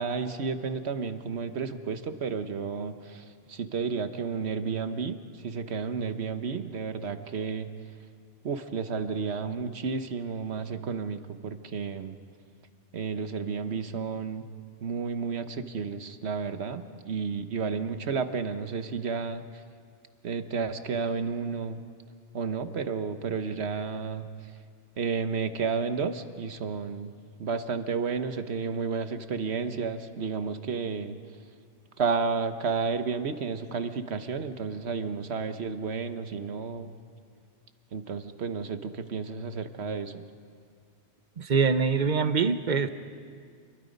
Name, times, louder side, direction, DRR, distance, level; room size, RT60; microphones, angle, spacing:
voice 1, 0.0-5.2 5.4-7.7 8.4-12.2 12.9-14.5 14.8-19.4 20.2-21.8 22.3-24.3 25.0-27.1 27.4-31.2 32.0-36.9 37.9-40.2, right 5 dB, 65° right, 9 dB, 1.3 m, -32 dB
voice 2, 41.4-42.9, right 5 dB, 45° right, 11 dB, 0.9 m, -24 dB
29.0 x 22.5 x 5.3 m, 2.1 s
omnidirectional pair, 1.2 m